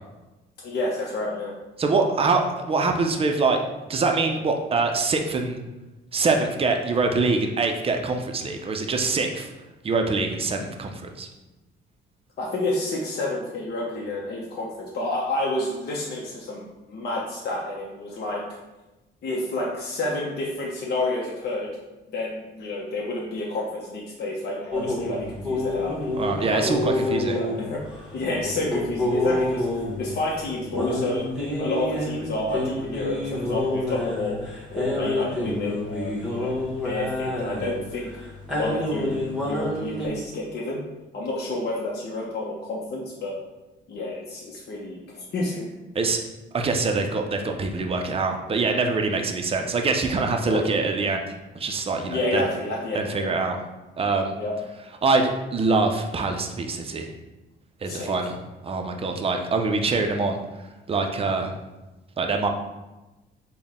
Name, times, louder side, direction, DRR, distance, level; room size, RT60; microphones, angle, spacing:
voice 1, 0.6-1.5 12.4-18.6 19.2-21.7 22.1-26.1 26.5-27.8 28.1-29.7 30.0-31.3 31.6-34.4 34.7-36.6 36.8-38.1 38.5-40.8 41.1-43.4 43.9-45.6 50.4-50.6 52.1-53.3 54.4-54.6 57.9-58.3, left 2 dB, 55° left, -4 dB, 0.7 m, -29 dB
voice 2, 1.8-3.6 3.9-5.6 6.1-9.5 9.8-11.3 26.2-27.4 45.9-46.2 46.5-52.5 52.9-53.6 54.0-54.4 55.0-57.1 57.8-58.4 58.6-60.4 60.9-61.5 62.2-62.5, right 3 dB, 30° right, 4 dB, 0.5 m, -24 dB
sound 1, 24.7-40.1, left 1 dB, 5° right, 1.1 m, -28 dB
4.0 x 2.1 x 3.5 m, 1.1 s
cardioid pair, 90°, 20 cm